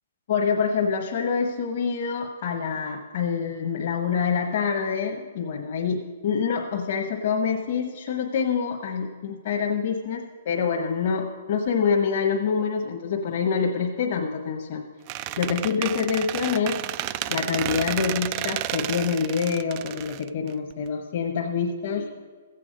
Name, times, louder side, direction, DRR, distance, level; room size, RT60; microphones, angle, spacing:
voice 1, 0.3-14.8 15.4-16.8 17.3-22.0, left 6 dB, 55° left, -1 dB, 1.2 m, -26 dB
Squeak, 15.1-20.9, right 15 dB, 35° right, 0.3 m, -31 dB
14.5 x 8.4 x 5.2 m, 1.5 s
hypercardioid pair, 155°, 0 cm